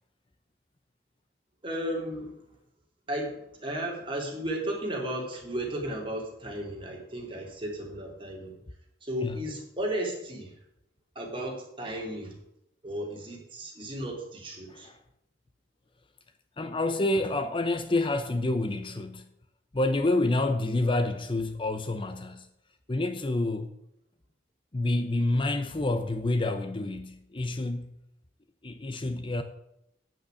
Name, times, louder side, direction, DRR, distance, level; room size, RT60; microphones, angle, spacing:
voice 1, 1.6-2.4 3.1-8.6 9.0-10.5 11.2-12.4 12.8-14.9, right 1 dB, 30° right, 3.6 m, -34 dB
voice 2, 16.6-19.2 19.7-22.5 22.9-23.7 24.7-28.0 28.6-29.4, left 2 dB, 30° left, 0.8 m, -28 dB
9.2 x 8.2 x 8.4 m
head